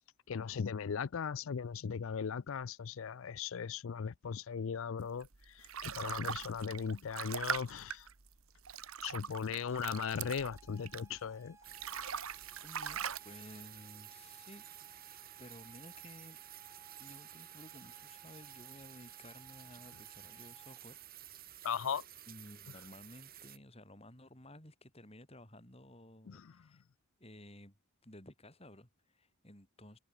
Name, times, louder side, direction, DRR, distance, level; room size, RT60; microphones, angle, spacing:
voice 1, 0.3-8.1 9.0-11.6 21.6-22.0 26.3-26.5, left 6 dB, 65° left, 0.4 m, -38 dB
sound 1, 5.2-11.3 11.6-13.2, right 7 dB, 70° right, 1.5 m, -41 dB
sound 2, 9.7-21.1, right 3 dB, 15° right, 4.4 m, -62 dB
sound 3, 11.6-23.6, right 12 dB, 40° right, 7.8 m, -53 dB
voice 2, 12.6-16.4 17.0-21.0 22.3-26.8 27.2-27.8 28.0-30.0, left 1 dB, 25° left, 6.5 m, -55 dB
head